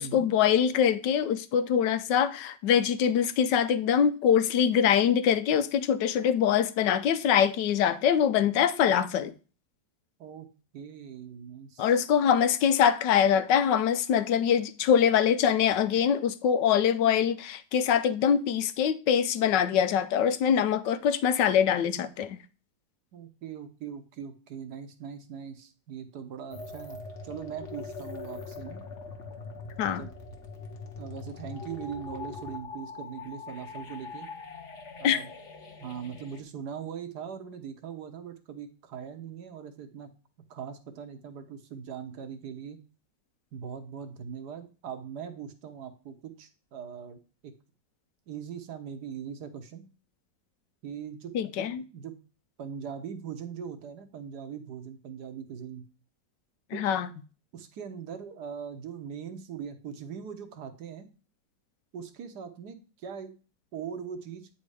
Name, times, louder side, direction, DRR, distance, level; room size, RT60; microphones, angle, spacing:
voice 1, 0.0-9.3 11.8-22.4 29.8-30.0 35.0-35.2 51.3-51.8 56.7-57.1, left 8 dB, 75° left, 1.3 m, -24 dB
voice 2, 10.7-12.0 23.1-28.8 29.8-30.1 31.0-34.3 35.0-35.3 35.8-40.1 40.5-42.8 43.5-47.5 48.3-49.8 50.8-52.2 52.6-55.8 56.7-56.8 57.5-61.1 61.9-63.3 63.7-64.5, right 7 dB, 65° right, 1.4 m, -41 dB
sound 1, 26.5-36.4, left 4 dB, 45° left, 1.3 m, -42 dB
8.8 x 4.3 x 4.8 m
omnidirectional pair, 2.0 m